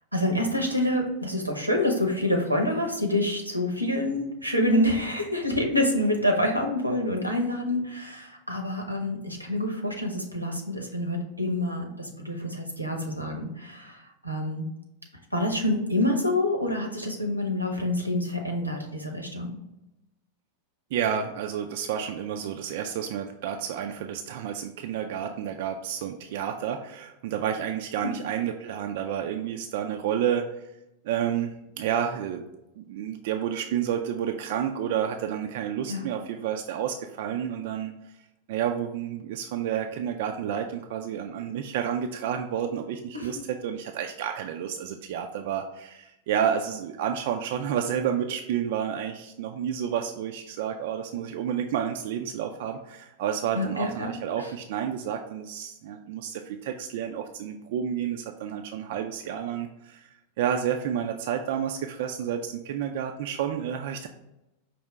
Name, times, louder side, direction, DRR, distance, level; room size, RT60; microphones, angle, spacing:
voice 1, 0.1-14.6 15.3-19.6 28.0-28.1 35.9-36.0 43.1-43.3 53.5-54.1, left 1 dB, 90° right, 3 dB, 0.8 m, -27 dB
voice 2, 20.9-30.7 31.0-32.5 32.8-37.9 38.5-60.1 60.4-64.1, right 9 dB, 50° right, 4 dB, 0.3 m, -30 dB
5.3 x 2.8 x 3.3 m, 0.91 s
figure-of-eight pair, 90°, 0 cm